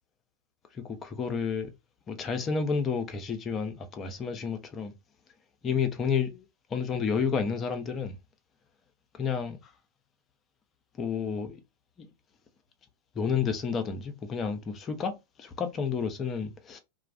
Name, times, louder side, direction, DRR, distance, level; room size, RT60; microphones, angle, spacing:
voice 1, 0.7-1.7 2.1-4.9 5.6-8.2 9.2-9.7 11.0-11.6 12.0-12.1 13.1-15.1 15.4-16.8, left 6 dB, 25° left, 0.6 m, -30 dB
2.3 x 2.1 x 2.6 m
figure-of-eight pair, 90°, 0 cm